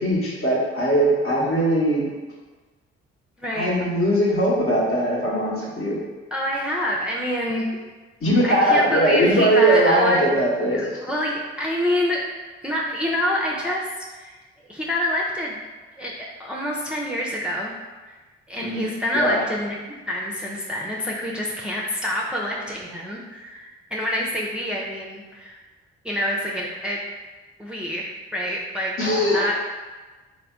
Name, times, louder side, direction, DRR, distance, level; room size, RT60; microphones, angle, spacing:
voice 1, 0.0-2.1 3.5-6.0 8.2-10.9 18.6-18.8 19.1-19.4 29.0-29.5, right 1 dB, 50° left, -4 dB, 1.2 m, -20 dB
voice 2, 3.4-3.7 6.3-7.7 8.4-10.2 10.7-12.3 12.6-13.9 14.1-14.4 14.7-15.6 16.0-17.7 18.0-18.2 18.5-25.6 26.0-27.0 27.6-29.5, left 1 dB, 5° right, -3 dB, 0.5 m, -27 dB
3.3 x 2.1 x 3.6 m, 1.3 s
hypercardioid pair, 45°, 29 cm